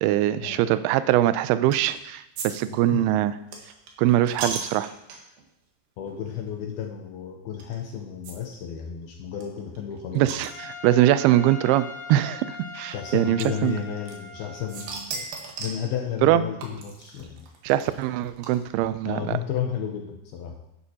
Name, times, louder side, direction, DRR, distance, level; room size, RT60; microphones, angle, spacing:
voice 1, 0.0-3.3 4.0-4.9 10.2-13.8 16.2-16.4 17.6-19.4, right 13 dB, 85° right, 13 dB, 2.3 m, -22 dB
sound 1, 1.7-2.0 2.4-5.4 6.1-6.2 6.5-6.6 7.6-7.7 8.2-8.3 8.6-8.7 8.9-9.0 9.4-11.1 12.0-12.1 13.4-14.4 14.7-15.9 16.6-18.9, right 4 dB, 65° right, 2.9 m, -37 dB
voice 2, 2.7-3.1 6.0-10.3 12.9-15.3 15.6-17.5 19.1-20.6, left 8 dB, 80° left, 2 dB, 2.4 m, -32 dB
Trumpet, 10.4-15.0, left 4 dB, 55° left, 2.0 m, -41 dB
11.5 x 10.5 x 2.8 m, 0.85 s
omnidirectional pair, 4.9 m